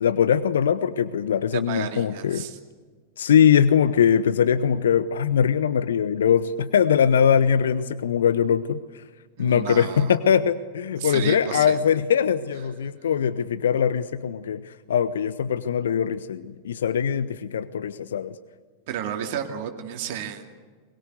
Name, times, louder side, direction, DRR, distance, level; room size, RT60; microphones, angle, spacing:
voice 1, 0.0-2.4 3.2-8.8 9.4-18.3, left 8 dB, 65° left, 16 dB, 0.7 m, -21 dB
voice 2, 1.7-2.6 9.4-10.2 11.0-11.8 18.9-20.5, right 9 dB, 50° right, 4 dB, 2.4 m, -32 dB
22.5 x 22.5 x 8.1 m, 1.5 s
figure-of-eight pair, 90°, 0 cm